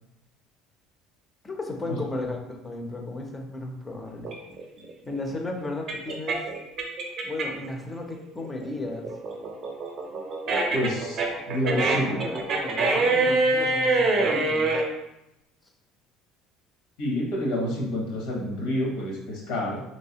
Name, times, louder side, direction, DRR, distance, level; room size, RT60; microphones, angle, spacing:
voice 1, 1.4-4.3 5.1-6.4 7.2-9.1 11.7-14.8, left 2 dB, 15° left, 3 dB, 0.5 m, -34 dB
sound 1, 4.2-7.7 8.1-14.8, right 3 dB, 40° right, 0.6 m, -25 dB
voice 2, 10.7-11.2 11.5-12.1 17.0-19.8, left 1 dB, 75° left, -2 dB, 0.9 m, -28 dB
3.1 x 3.1 x 2.8 m, 0.89 s
cardioid pair, 155°, 0 cm